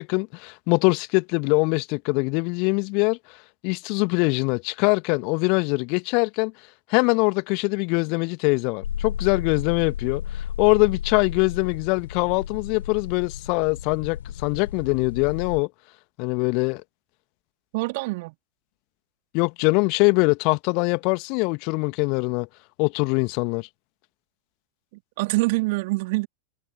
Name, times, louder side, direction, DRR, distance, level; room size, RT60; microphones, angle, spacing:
voice 1, 0.0-3.2 3.6-6.5 6.9-15.7 16.2-16.8 19.3-22.5 22.8-23.7, left 33 dB, 45° left, 1.8 m, -23 dB
sound 1, 8.8-15.6, left 9 dB, 65° left, 4.2 m, -33 dB
voice 2, 17.7-18.4 25.2-26.3, right 24 dB, 50° right, 3.4 m, -25 dB
figure-of-eight pair, 90°, 0 cm